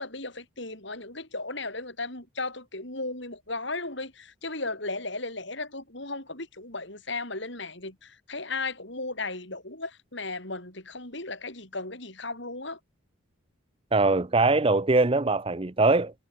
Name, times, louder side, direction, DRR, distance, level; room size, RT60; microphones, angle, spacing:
voice 1, 0.0-12.8, left 3 dB, 60° left, 7.5 m, -35 dB
voice 2, 13.9-16.1, right 3 dB, 25° right, 0.6 m, -22 dB
head